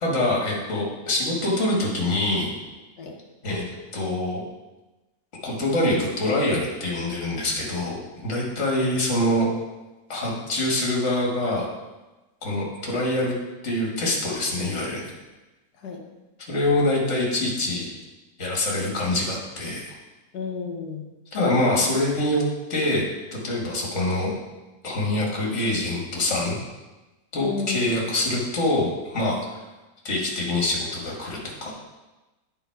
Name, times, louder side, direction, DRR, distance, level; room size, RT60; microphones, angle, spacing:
voice 1, 0.0-2.5 3.4-4.4 5.4-9.5 10.1-11.7 12.4-13.3 13.6-15.0 16.5-17.9 18.4-19.9 21.3-22.4 22.7-23.0 23.3-24.3 24.8-26.6 27.3-29.4 30.0-31.7, left 1 dB, 45° left, -3 dB, 2.1 m, -25 dB
voice 2, 20.3-21.1 27.4-28.0, left 5 dB, 70° left, 0 dB, 1.5 m, -32 dB
9.0 x 5.2 x 4.7 m, 1.1 s
omnidirectional pair, 1.8 m